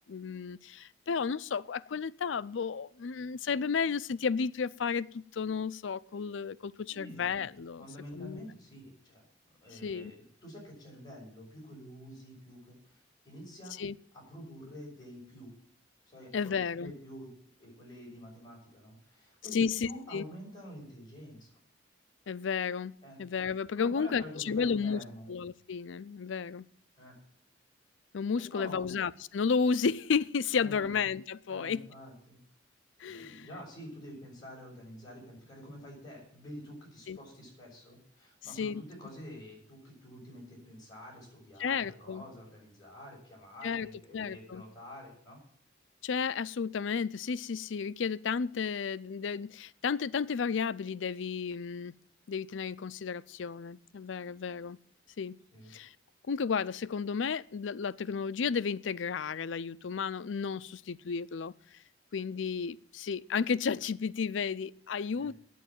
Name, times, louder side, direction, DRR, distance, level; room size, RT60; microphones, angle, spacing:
voice 1, 0.1-7.9 8.1-8.5 9.7-10.1 13.8-14.0 16.3-16.9 19.5-20.3 22.3-25.0 25.3-26.7 28.1-31.8 33.0-33.5 37.1-37.2 38.6-38.8 41.6-42.2 43.6-43.9 44.1-44.6 46.0-51.9 52.3-54.8 55.2-55.4 55.7-55.9 56.3-61.5 62.1-65.3, left 6 dB, 80° left, 0.5 m, -32 dB
voice 2, 6.9-7.3 7.8-9.2 9.6-10.1 10.4-13.8 14.1-15.5 16.1-17.3 17.6-21.5 23.0-23.2 23.7-25.3 26.9-27.2 28.4-28.9 30.5-30.9 31.5-32.4 33.0-45.4 55.5-55.7 65.2-65.3, equal, 20° left, 6.1 m, -48 dB
9.4 x 8.5 x 9.0 m
head